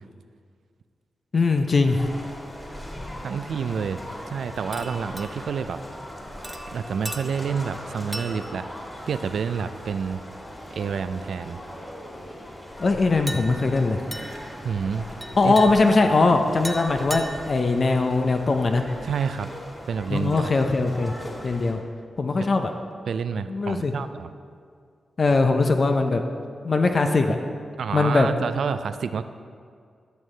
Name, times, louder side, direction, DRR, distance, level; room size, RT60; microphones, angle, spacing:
voice 1, 1.3-2.0 12.8-14.0 15.4-18.8 20.1-21.1 21.4-21.8 22.2-22.7 23.5-23.9 25.2-26.2 26.6-27.4 27.9-28.3, left 3 dB, 55° left, 5 dB, 0.6 m, -21 dB
sound 1, 1.9-21.7, equal, 25° left, 2.4 m, -39 dB
voice 2, 3.2-4.0 4.3-5.8 6.7-8.7 9.1-10.2 10.7-11.6 14.6-15.1 15.4-15.5 19.0-19.5 19.9-20.5 22.4-22.5 23.1-24.3 27.8-29.2, right 6 dB, 75° right, 11 dB, 0.3 m, -28 dB
sound 2, 4.7-5.6 6.4-7.7 8.1-8.7 9.2-9.5 13.3-13.8 14.1-14.5 15.2-16.1 16.6-17.6 18.7-18.8 20.3-20.6, right 1 dB, 15° right, 0.8 m, -38 dB
12.5 x 6.3 x 3.3 m, 2.1 s
supercardioid pair, 40°, 0 cm